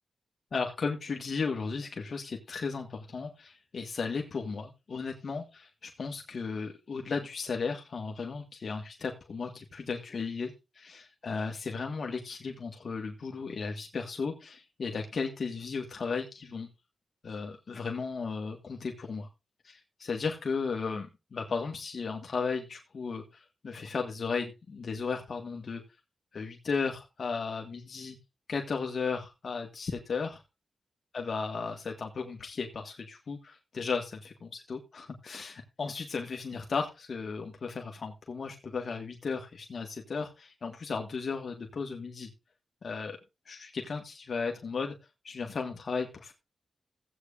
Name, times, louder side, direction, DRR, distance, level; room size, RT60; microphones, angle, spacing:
voice 1, 0.5-16.7 17.2-19.3 19.6-25.8 26.3-28.2 28.5-30.4 31.1-42.3 42.8-43.2 43.5-44.9 45.2-46.3, left 5 dB, 60° left, 3 dB, 1.8 m, -35 dB
16.0 x 8.6 x 2.6 m, 0.25 s
cardioid pair, 80°, 0 cm